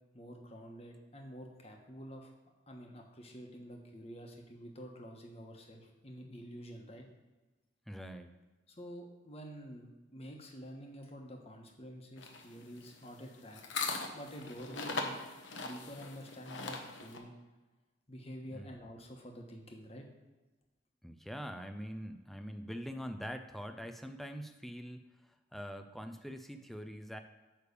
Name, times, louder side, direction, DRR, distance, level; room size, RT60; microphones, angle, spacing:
voice 1, 0.1-2.3 2.7-7.1 8.7-13.6 14.1-15.2 15.6-17.3 18.1-20.0, equal, 35° left, 2 dB, 1.2 m, -48 dB
voice 2, 7.9-8.3 18.5-18.7 21.0-27.2, equal, ahead, 7 dB, 0.4 m, -44 dB
sound 1, 12.2-17.2, left 3 dB, 85° left, 1.0 m, -40 dB
9.5 x 3.3 x 6.7 m, 1.2 s
head